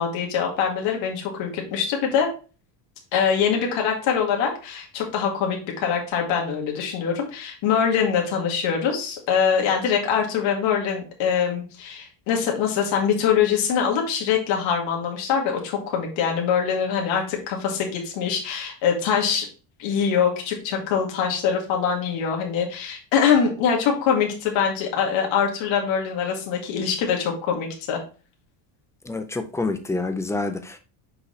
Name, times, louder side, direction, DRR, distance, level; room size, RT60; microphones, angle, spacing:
voice 1, 0.0-2.3 3.1-19.5 19.8-28.0, left 7 dB, 65° left, 2.1 m, -23 dB
voice 2, 29.0-30.8, left 3 dB, 5° left, 0.4 m, -27 dB
6.5 x 4.9 x 3.2 m
cardioid pair, 145°, 48 cm